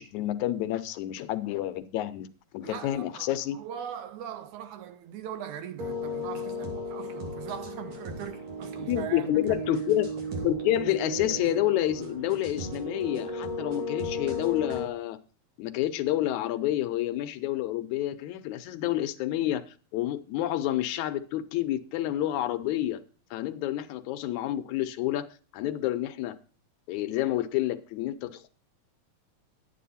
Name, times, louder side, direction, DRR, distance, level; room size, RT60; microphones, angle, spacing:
voice 1, 0.0-2.3 2.5-3.6 8.9-10.1 10.4-15.2 15.6-19.6 19.9-23.0 23.3-25.3 25.5-26.4 26.9-28.5, left 14 dB, 80° left, 2.1 m, -29 dB
voice 2, 2.6-9.6, right 9 dB, 80° right, 2.4 m, -40 dB
sound 1, 5.8-14.8, left 1 dB, 60° right, 3.5 m, -35 dB
11.0 x 9.3 x 4.2 m
omnidirectional pair, 3.4 m